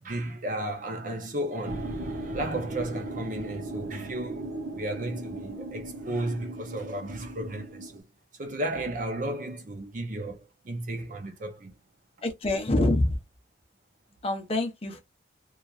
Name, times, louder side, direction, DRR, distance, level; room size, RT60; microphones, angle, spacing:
voice 1, 0.0-8.0 8.4-11.7, right 1 dB, 40° right, 0.5 m, -34 dB
sound 1, 1.6-8.0, right 1 dB, 85° right, 0.6 m, -37 dB
voice 2, 12.2-13.2 14.2-15.0, left 2 dB, 30° left, 0.6 m, -26 dB
3.0 x 2.3 x 2.4 m
head